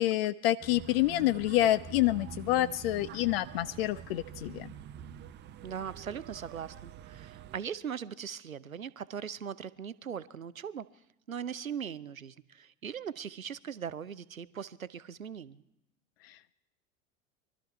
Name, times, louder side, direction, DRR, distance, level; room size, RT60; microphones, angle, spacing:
voice 1, 0.0-4.7 16.2-16.5, left 14 dB, 50° left, 18 dB, 0.5 m, -28 dB
sound 1, 0.6-7.6, right 9 dB, 25° right, 0.6 m, -46 dB
voice 2, 5.6-10.9 11.3-15.6, right 8 dB, 90° right, 17 dB, 0.5 m, -40 dB
23.5 x 12.5 x 4.5 m, 0.88 s
figure-of-eight pair, 75°, 40 cm